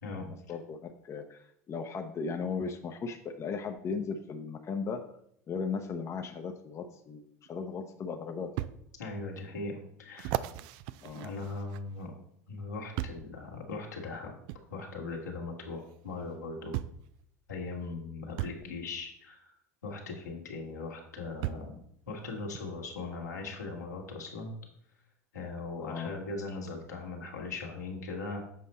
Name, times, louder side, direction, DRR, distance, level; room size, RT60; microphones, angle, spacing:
voice 1, 0.2-5.0 5.5-8.5 11.0-11.3 25.8-26.1, left 5 dB, 35° left, 5 dB, 0.8 m, -37 dB
sound 1, 7.4-7.5 8.6-8.8 9.4-9.5 10.2-12.1 13.0-13.3 14.5-14.6 15.9-16.0 16.7-17.1 18.4-18.6 20.2-20.3 21.4-21.8 22.5-22.6, right 14 dB, 60° right, 0.4 m, -36 dB
voice 2, 9.0-9.7 10.0-10.4 11.2-12.1 12.5-14.3 14.7-16.7 17.5-19.5 19.8-21.8 22.1-24.5 25.3-28.4, left 3 dB, 85° left, -1 dB, 1.7 m, -39 dB
7.6 x 5.3 x 4.2 m, 0.70 s
hypercardioid pair, 80°, 9 cm